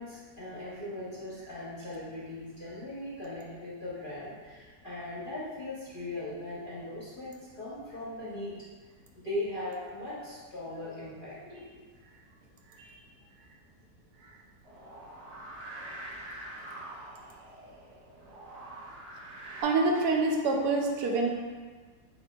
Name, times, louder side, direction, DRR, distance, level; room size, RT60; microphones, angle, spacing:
voice 1, 0.0-8.5 9.1-11.8, left 1 dB, 45° left, -8 dB, 0.7 m, -39 dB
sound 1, 14.6-19.6, right 1 dB, 45° right, 1.4 m, -45 dB
voice 2, 19.6-21.3, right 3 dB, 75° right, 1 dB, 1.0 m, -26 dB
8.0 x 2.7 x 2.2 m, 1.5 s
omnidirectional pair, 1.8 m